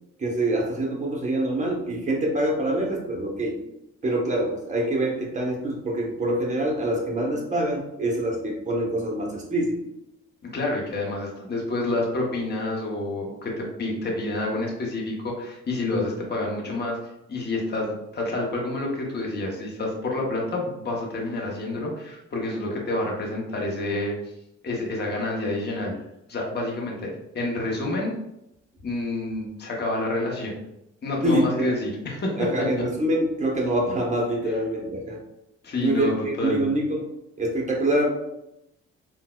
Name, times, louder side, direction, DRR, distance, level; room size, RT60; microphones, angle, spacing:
voice 1, 0.2-3.6 4.0-9.8 15.9-16.1 31.2-31.8 32.4-35.2 35.8-37.1 37.4-38.1, right 1 dB, 25° right, -1 dB, 0.9 m, -25 dB
voice 2, 10.4-17.0 17.3-24.1 24.6-25.9 26.3-28.1 28.8-30.6 31.0-32.5 34.4-34.6 35.6-36.7, left 2 dB, 35° left, -1 dB, 0.8 m, -28 dB
3.9 x 2.2 x 2.2 m, 0.85 s
cardioid pair, 90°, 30 cm